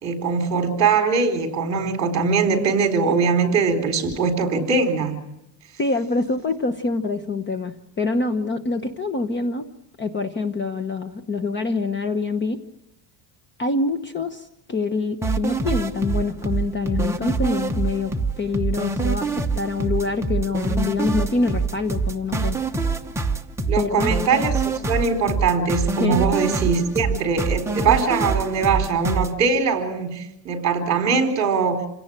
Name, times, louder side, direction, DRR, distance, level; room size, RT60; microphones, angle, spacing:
voice 1, 0.0-5.2 23.7-24.5 24.9-31.9, right 5 dB, 35° right, 6 dB, 4.3 m, -21 dB
voice 2, 5.8-9.7 10.0-12.6 13.6-22.6 23.7-24.2 26.0-26.2, left 3 dB, 25° left, 8 dB, 1.1 m, -25 dB
sound 1, 15.2-29.3, right 4 dB, 5° right, 0.9 m, -25 dB
28.0 x 17.5 x 8.9 m, 0.88 s
cardioid pair, 165°, 47 cm